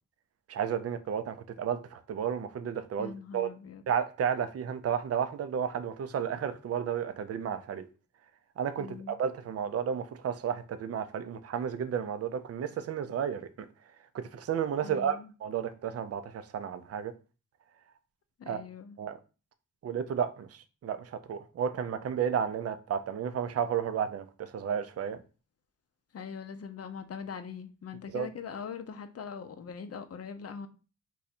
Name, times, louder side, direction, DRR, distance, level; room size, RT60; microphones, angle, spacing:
voice 1, 0.5-3.5 3.9-7.9 8.6-13.4 14.1-17.1 18.5-18.6 19.0-19.2 19.8-25.2 28.1-28.3, right 8 dB, 45° right, 0.5 m, -32 dB
voice 2, 3.0-3.8 8.8-9.2 14.8-15.3 18.4-19.0 26.1-30.7, left 6 dB, 45° left, 0.6 m, -42 dB
2.7 x 2.3 x 4.1 m
supercardioid pair, 45°, 35 cm